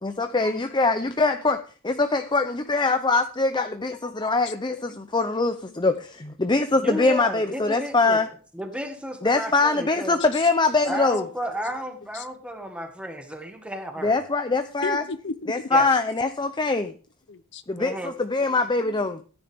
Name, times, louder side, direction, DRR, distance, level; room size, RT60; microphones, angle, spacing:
voice 1, 0.0-1.6 1.8-8.3 9.2-11.2 14.0-15.0 15.5-16.9 17.7-19.2, left 3 dB, 20° left, 8 dB, 0.7 m, -23 dB
voice 2, 6.8-8.2 8.5-10.2 10.8-14.2 15.7-15.9 17.8-18.1, equal, 5° right, 5 dB, 1.7 m, -33 dB
voice 3, 14.8-15.5 16.2-16.4 16.7-16.8 17.3-17.6 18.3-18.5 18.8-19.2, left 4 dB, 55° left, 13 dB, 0.7 m, -36 dB
14.0 x 9.9 x 3.6 m, 0.38 s
head